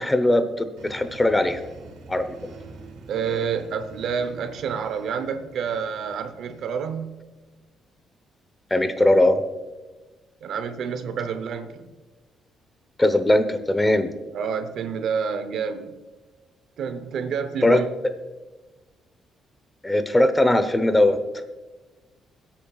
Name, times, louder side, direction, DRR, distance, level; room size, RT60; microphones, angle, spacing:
voice 1, 0.0-1.6 2.1-2.5 8.7-9.4 13.0-14.1 17.6-17.8 19.8-21.2, left 1 dB, 15° left, 10 dB, 0.9 m, -20 dB
sound 1, 0.8-7.2, right 3 dB, 90° right, 1.8 m, -46 dB
voice 2, 3.1-7.2 10.4-11.9 14.3-15.9 16.8-17.9, right 6 dB, 70° right, 10 dB, 0.9 m, -28 dB
17.0 x 8.9 x 2.4 m, 1.2 s
cardioid pair, 90°, 0 cm